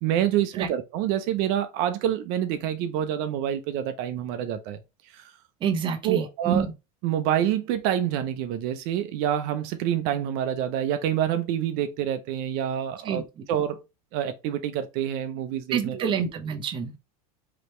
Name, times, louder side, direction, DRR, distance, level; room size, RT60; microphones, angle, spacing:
voice 1, 0.0-4.8 5.1-5.3 6.0-6.7 7.0-13.2 13.5-13.8 14.1-16.1, right 10 dB, 55° right, 0.7 m, -27 dB
voice 2, 5.6-6.7 13.0-13.4 15.7-17.1, right 7 dB, 25° right, 0.9 m, -28 dB
5.0 x 3.0 x 3.2 m
supercardioid pair, 150°, 18 cm